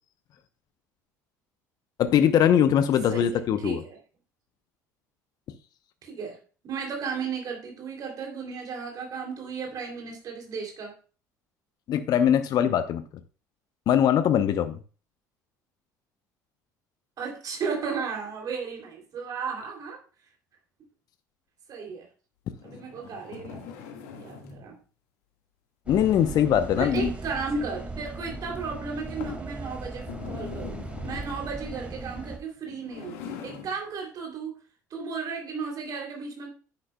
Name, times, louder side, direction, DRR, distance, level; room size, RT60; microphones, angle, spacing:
voice 1, 2.0-3.8 11.9-13.0 13.9-14.8 25.9-27.1, left 9 dB, 45° left, 11 dB, 0.8 m, -21 dB
voice 2, 3.1-4.0 6.0-6.4 6.6-10.9 17.2-20.0 21.7-22.0 22.6-23.6 24.1-24.8 26.8-30.8 31.0-34.5 34.9-36.5, right 5 dB, 45° right, 1 dB, 3.0 m, -34 dB
sound 1, 22.5-24.7 26.5-27.4 28.0-28.1 28.6-28.7 29.2-29.5 30.0-31.5 32.5-33.8, left 6 dB, 65° left, 1.7 m, -42 dB
sound 2, 25.9-32.4, right 2 dB, 15° right, 2.0 m, -38 dB
10.0 x 9.9 x 2.3 m, 0.37 s
figure-of-eight pair, 60°, 9 cm